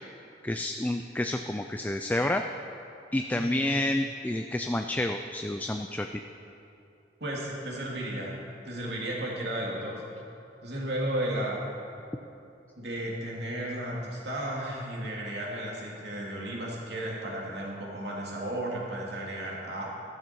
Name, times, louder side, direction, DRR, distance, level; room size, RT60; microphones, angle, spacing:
voice 1, 0.4-2.4 3.1-6.1, left 1 dB, 10° left, 5 dB, 0.3 m, -29 dB
voice 2, 3.3-3.7 7.2-8.4 8.7-10.0 10.6-11.6 12.8-19.9, right 1 dB, 65° right, -3 dB, 2.8 m, -34 dB
14.0 x 12.5 x 4.6 m, 2.7 s
head